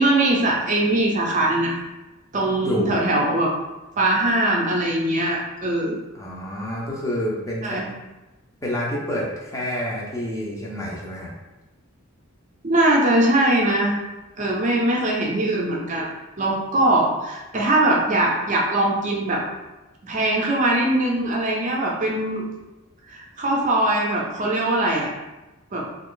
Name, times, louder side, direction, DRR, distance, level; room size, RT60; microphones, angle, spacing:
voice 1, 0.0-1.8 2.3-3.5 4.0-6.0 7.6-7.8 12.6-14.0 14.4-16.1 16.4-19.4 20.0-22.4 23.1-25.1 25.7-25.8, right 1 dB, 35° right, -2 dB, 0.5 m, -21 dB
voice 2, 2.6-3.0 6.1-7.8 8.6-11.3, left 1 dB, 15° left, -4 dB, 0.6 m, -28 dB
2.9 x 2.5 x 3.7 m, 1.1 s
head